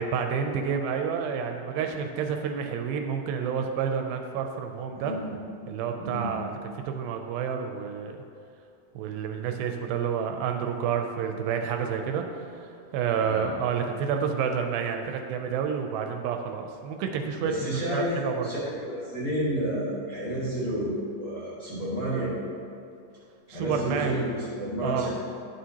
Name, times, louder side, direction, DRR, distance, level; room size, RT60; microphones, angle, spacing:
voice 1, 0.0-5.1 5.7-6.6 6.9-8.2 9.0-12.2 12.5-17.7 17.9-18.5 23.5-24.2 24.8-25.1, right 7 dB, 80° right, 5 dB, 2.3 m, -29 dB
voice 2, 4.9-5.4 6.0-6.3 13.2-13.5 17.3-18.2 18.4-22.4 23.5-25.1, equal, 40° left, -9 dB, 1.4 m, -31 dB
11.0 x 6.3 x 2.8 m, 2.4 s
omnidirectional pair, 4.3 m